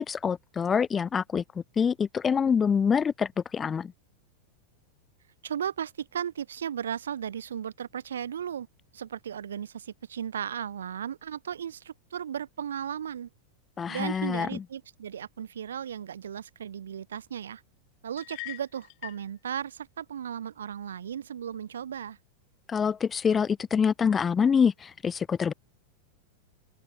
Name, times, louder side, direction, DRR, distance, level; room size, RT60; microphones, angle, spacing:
voice 1, 0.0-1.4 1.8-3.9 13.8-14.6 22.7-25.5, left 6 dB, 20° left, 0.4 m, -25 dB
voice 2, 5.4-8.7 8.9-13.3 13.9-17.6 18.0-22.2, right 9 dB, 65° right, 2.5 m, -35 dB
sound 1, 18.2-19.3, left 28 dB, 45° left, 3.1 m, -42 dB
open air
figure-of-eight pair, 90°, 0 cm